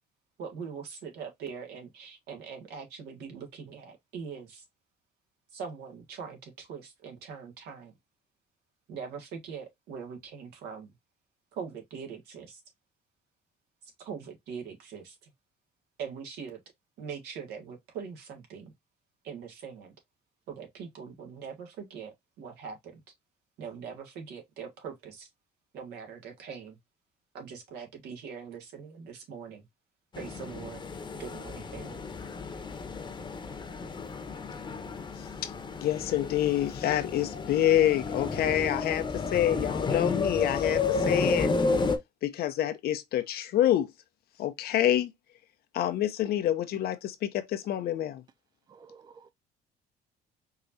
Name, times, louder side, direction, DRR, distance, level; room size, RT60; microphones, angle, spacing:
voice 1, 0.4-4.7 5.5-8.0 8.9-10.9 11.5-12.6 13.8-15.3 16.0-16.6 17.0-18.7 19.2-19.9 20.5-23.0 23.6-25.3 25.7-26.8 27.3-29.7 30.2-30.8 31.1-32.1, right 6 dB, 80° right, 1.8 m, -42 dB
sound 1, 30.1-42.0, left 4 dB, 25° left, 1.0 m, -32 dB
voice 2, 35.8-41.5 42.2-43.9 44.4-45.1 45.7-48.2, left 12 dB, 65° left, 0.8 m, -27 dB
voice 3, 48.7-49.3, right 5 dB, 25° right, 0.4 m, -53 dB
4.8 x 3.0 x 2.7 m
cardioid pair, 110°, 17 cm